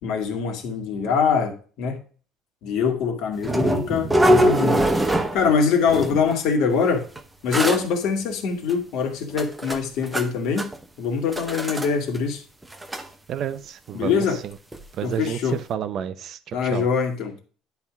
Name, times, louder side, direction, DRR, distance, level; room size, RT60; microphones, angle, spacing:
voice 1, 0.0-2.0 2.6-7.1 7.4-10.7 11.0-12.4 13.9-14.4 15.0-15.6 16.5-17.4, left 6 dB, 65° left, 2.0 m, -23 dB
sound 1, 3.4-5.6 5.9-6.4 7.2-7.3 7.5-7.8 8.7-8.8 9.3-10.3 10.6-10.8 11.3-11.9 12.1-12.2 12.6-13.1 14.7-14.8 15.3-15.4, right 1 dB, 10° right, 0.7 m, -22 dB
voice 2, 13.3-14.6 15.0-16.9, right 9 dB, 45° right, 0.7 m, -30 dB
10.5 x 3.6 x 6.0 m
cardioid pair, 155°, 0 cm